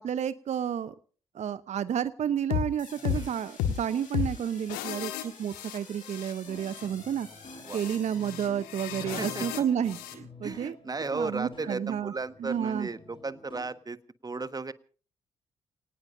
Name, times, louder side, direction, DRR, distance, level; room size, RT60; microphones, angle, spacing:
voice 1, 0.0-0.9 1.3-7.3 7.7-10.8 11.1-12.1 12.4-12.9, right 9 dB, 50° right, 15 dB, 0.8 m, -31 dB
sound 1, 2.5-2.7 3.0-3.2 3.6-3.8 4.1-4.3 4.7-6.3 6.6-6.9 7.6-10.1, left 9 dB, 75° left, 1.7 m, -33 dB
sound 2, 2.8-8.9, left 4 dB, 60° left, 7.5 m, -51 dB
voice 2, 3.0-3.3 7.6-7.8 9.2-9.6 10.4-14.0 14.2-14.7, right 3 dB, 25° right, 13 dB, 1.3 m, -35 dB
sound 3, 6.5-13.8, left 2 dB, 35° left, 3.6 m, -49 dB
29.0 x 19.0 x 2.6 m, 0.40 s
hypercardioid pair, 45°, 15 cm